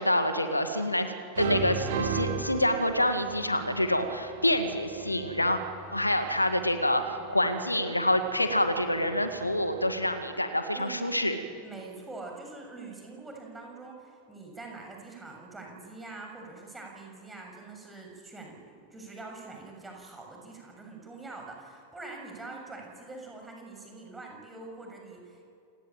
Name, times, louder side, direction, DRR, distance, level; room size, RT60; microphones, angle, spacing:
voice 1, 0.0-5.6 5.9-11.4, left 1 dB, 85° left, 8 dB, 1.9 m, -27 dB
sound 1, 0.7-1.1 1.4-10.1, right 5 dB, 55° right, 2.7 m, -38 dB
voice 2, 10.7-25.4, right 3 dB, 10° right, 1 dB, 6.8 m, -44 dB
28.0 x 18.0 x 8.9 m, 2.5 s
figure-of-eight pair, 90°, 0 cm